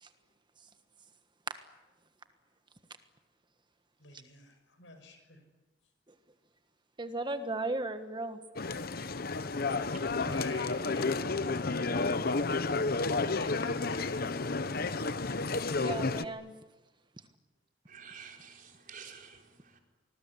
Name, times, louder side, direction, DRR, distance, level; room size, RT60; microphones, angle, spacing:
voice 1, 4.0-5.4 10.0-11.5 13.1-15.2, left 2 dB, 80° left, 7 dB, 6.3 m, -45 dB
voice 2, 7.0-8.4 15.8-16.5, right 2 dB, 25° right, 8 dB, 1.4 m, -35 dB
sound 1, 8.6-16.3, left 3 dB, 50° left, 1.0 m, -31 dB
voice 3, 8.8-10.0 17.9-19.8, right 6 dB, 45° right, 2 dB, 4.5 m, -52 dB
26.0 x 20.5 x 9.8 m, 1.2 s
head